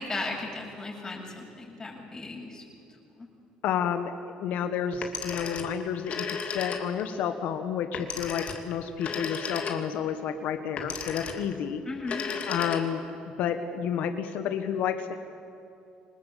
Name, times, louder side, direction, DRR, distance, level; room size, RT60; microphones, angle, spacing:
voice 1, 0.0-2.6 3.2-3.3 11.9-12.3, left 3 dB, 20° left, -2 dB, 7.6 m, -36 dB
voice 2, 3.6-4.1 4.4-11.8 12.4-13.0 13.4-15.2, left 8 dB, 70° left, 8 dB, 1.5 m, -30 dB
Telephone, 4.9-7.1 7.9-10.1 10.8-11.6 12.0-13.1, left 6 dB, 50° left, 2.8 m, -35 dB
26.0 x 20.0 x 8.6 m, 2.7 s
cardioid pair, 100°, 3 cm